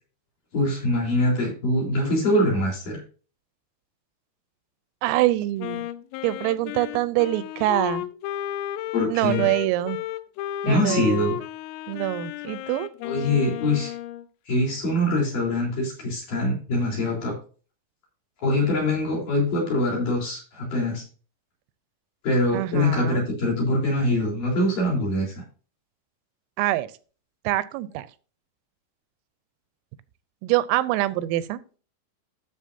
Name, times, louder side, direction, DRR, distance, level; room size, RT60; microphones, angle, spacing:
voice 1, 0.5-3.0 8.9-9.5 10.6-11.3 13.0-13.9 14.5-17.4 18.4-21.0 22.2-25.4, left 1 dB, 45° left, -2 dB, 4.9 m, -23 dB
voice 2, 5.0-5.9 6.2-8.0 9.1-10.0 10.6-11.2 11.9-12.9 22.5-23.2 26.6-26.9 27.4-28.1 30.4-31.6, right 15 dB, 90° right, 15 dB, 3.3 m, -25 dB
Wind instrument woodwind instrument, 5.6-14.3, left 12 dB, 90° left, 3.2 m, -33 dB
14.0 x 7.0 x 2.7 m, 0.38 s
omnidirectional pair, 5.8 m